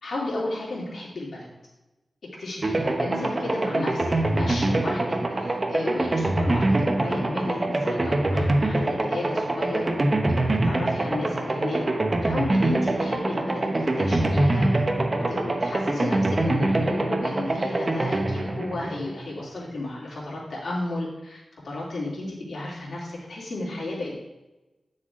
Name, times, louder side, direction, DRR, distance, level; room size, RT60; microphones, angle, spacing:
voice 1, 0.0-1.5 2.4-9.9 10.4-11.8 12.2-14.8 15.1-24.1, left 2 dB, 70° left, -5 dB, 3.2 m, -33 dB
sound 1, 2.6-19.5, right 2 dB, 35° right, 1.0 m, -24 dB
9.6 x 6.6 x 3.7 m, 1.0 s
wide cardioid pair, 85°, 0 cm